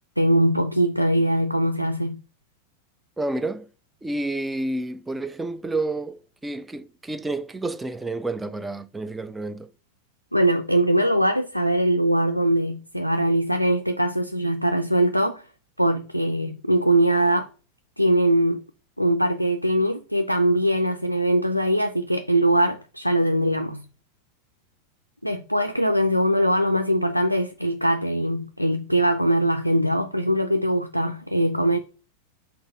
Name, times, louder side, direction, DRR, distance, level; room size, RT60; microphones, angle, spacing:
voice 1, 0.2-2.2 10.3-15.4 15.8-17.5 18.0-18.6 19.0-23.8 25.2-31.8, right 1 dB, 90° left, 0.3 m, -22 dB
voice 2, 3.2-3.7 4.0-9.7, right 2 dB, 10° right, 0.3 m, -30 dB
4.0 x 2.9 x 4.5 m
figure-of-eight pair, 90°, 0 cm